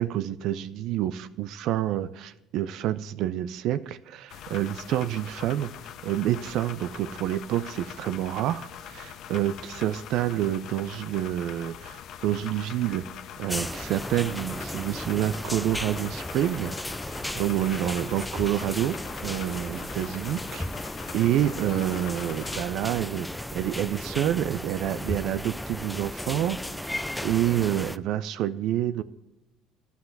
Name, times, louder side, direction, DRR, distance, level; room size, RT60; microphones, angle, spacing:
voice 1, 0.0-5.7 6.0-13.1 13.4-16.7 17.4-20.7 21.1-29.0, right 12 dB, 70° right, 13 dB, 0.4 m, -28 dB
sound 1, 4.3-22.7, left 9 dB, 65° left, 0.7 m, -43 dB
sound 2, 13.5-28.0, left 1 dB, 5° left, 0.3 m, -35 dB
11.0 x 5.8 x 7.7 m, 0.96 s
supercardioid pair, 95°, 0 cm